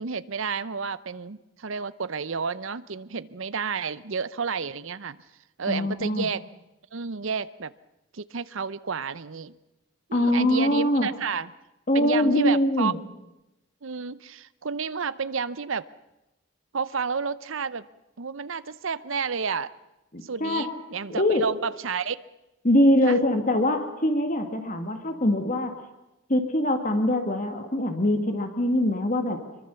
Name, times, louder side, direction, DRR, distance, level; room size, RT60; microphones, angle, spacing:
voice 1, 0.0-5.2 5.6-6.4 6.9-7.7 8.1-9.5 10.1-11.5 11.9-12.9 13.8-15.9 16.7-17.9 18.2-19.7 20.2-22.2 23.0-23.2, right 5 dB, 65° right, 16 dB, 0.7 m, -31 dB
voice 2, 5.7-6.3 10.1-11.1 11.9-13.0 20.1-20.7 21.1-21.4 22.6-25.7 26.3-29.4, left 1 dB, 35° left, 6 dB, 1.9 m, -23 dB
24.0 x 23.0 x 7.0 m, 0.97 s
head